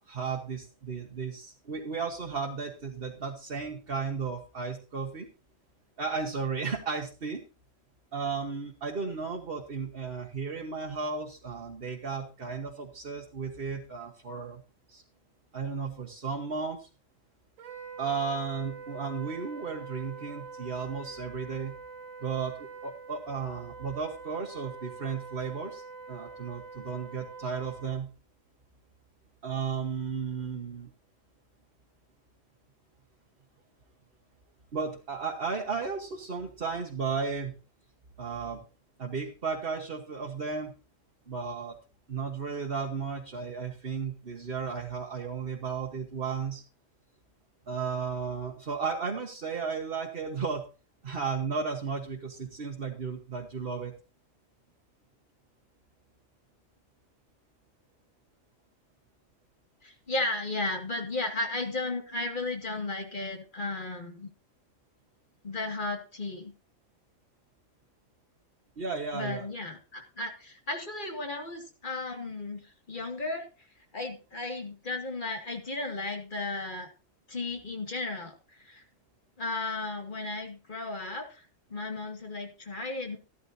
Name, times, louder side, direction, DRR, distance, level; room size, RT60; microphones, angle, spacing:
voice 1, 0.1-5.3 6.0-7.4 8.1-14.6 14.9-15.0 15.5-16.9 18.0-21.7 22.2-28.1 29.4-30.9 34.7-37.5 38.2-38.6 39.0-40.7 41.3-41.7 42.1-46.6 47.7-50.6 51.0-53.9 68.8-69.5, right 5 dB, 45° right, 0 dB, 1.6 m, -34 dB
Wind instrument woodwind instrument, 17.6-28.0, right 4 dB, 80° right, 1.7 m, -45 dB
voice 2, 59.8-64.3 65.4-66.5 69.1-72.6 72.9-73.5 73.9-76.9 77.3-78.8 79.4-83.2, left 2 dB, 40° left, 3 dB, 2.3 m, -34 dB
14.0 x 12.5 x 2.7 m, 0.33 s
omnidirectional pair, 1.4 m